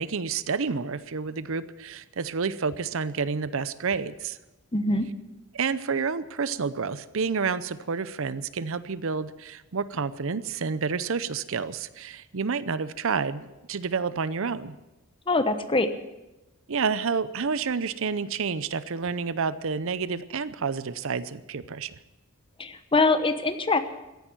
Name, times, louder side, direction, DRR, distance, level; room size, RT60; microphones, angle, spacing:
voice 1, 0.0-4.4 5.5-14.8 16.7-22.0, right 5 dB, 65° right, 15 dB, 0.7 m, -29 dB
voice 2, 4.7-5.1 15.3-15.9 22.6-23.8, left 3 dB, 25° left, 10 dB, 1.0 m, -23 dB
15.0 x 11.0 x 9.1 m, 1.0 s
head